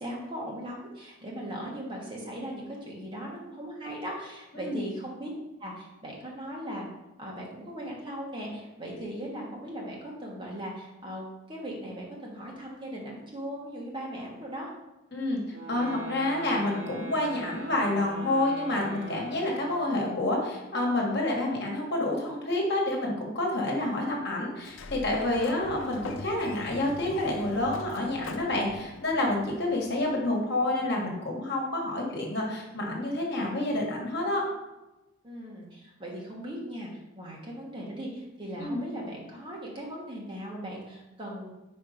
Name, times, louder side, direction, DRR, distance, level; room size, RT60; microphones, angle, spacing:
voice 1, 0.0-5.3 5.6-6.9 7.2-14.7 35.2-41.5, equal, 25° right, -3 dB, 1.3 m, -38 dB
voice 2, 15.1-34.4 38.6-38.8, left 1 dB, 55° left, -1 dB, 1.4 m, -28 dB
sound 1, 15.5-20.0, right 4 dB, 75° right, 1.5 m, -42 dB
Sliding door, 24.6-30.2, left 3 dB, 70° left, 0.5 m, -43 dB
5.3 x 4.5 x 5.0 m, 1.0 s
head